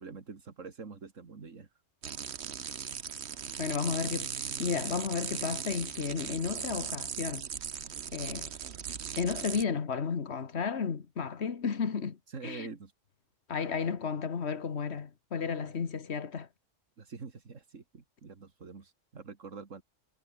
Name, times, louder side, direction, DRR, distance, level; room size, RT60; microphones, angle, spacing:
voice 1, 0.0-1.8 12.3-12.9 13.9-14.0 15.6-15.9 17.0-19.8, right 5 dB, 80° right, 2.5 m, -46 dB
sound 1, 2.0-9.6, right 8 dB, 60° right, 1.3 m, -38 dB
voice 2, 3.6-4.3 4.6-7.5 8.1-8.5 9.2-12.2 12.4-12.7 13.5-16.5, left 6 dB, 60° left, 1.7 m, -33 dB
omnidirectional pair, 1.3 m